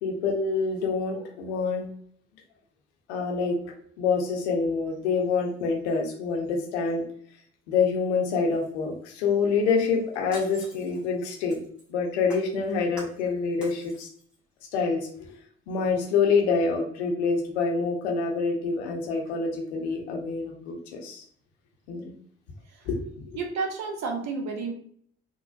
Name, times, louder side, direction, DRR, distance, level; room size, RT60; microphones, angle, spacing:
voice 1, 0.0-1.9 3.1-3.6 4.0-7.0 7.7-11.6 11.9-14.1 14.7-15.3 15.7-21.2 21.9-22.1 22.9-23.4, left 4 dB, 75° left, 1 dB, 0.7 m, -26 dB
Shatter, 9.8-11.9 12.3-13.3 13.6-14.3 14.7-14.8, right 1 dB, 5° right, 1.3 m, -46 dB
voice 2, 23.4-24.7, right 4 dB, 50° right, 3 dB, 0.8 m, -31 dB
3.8 x 2.0 x 2.4 m, 0.62 s
figure-of-eight pair, 45°, 34 cm